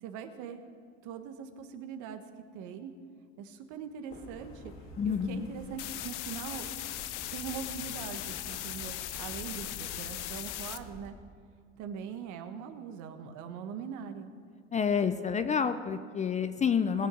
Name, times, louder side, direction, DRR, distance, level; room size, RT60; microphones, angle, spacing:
voice 1, 0.0-0.6 1.0-2.2 2.5-2.9 3.4-4.7 5.0-6.7 7.3-11.1 11.8-14.3, right 7 dB, 55° right, 7 dB, 1.4 m, -42 dB
sound 1, 4.1-11.1, left 2 dB, 40° left, 2.3 m, -48 dB
voice 2, 5.0-5.5 14.7-17.1, left 6 dB, 20° left, 10 dB, 0.6 m, -29 dB
sound 2, 5.8-10.8, left 14 dB, 80° left, 0.7 m, -39 dB
19.5 x 6.6 x 6.4 m, 2.2 s
hypercardioid pair, 100°, 35 cm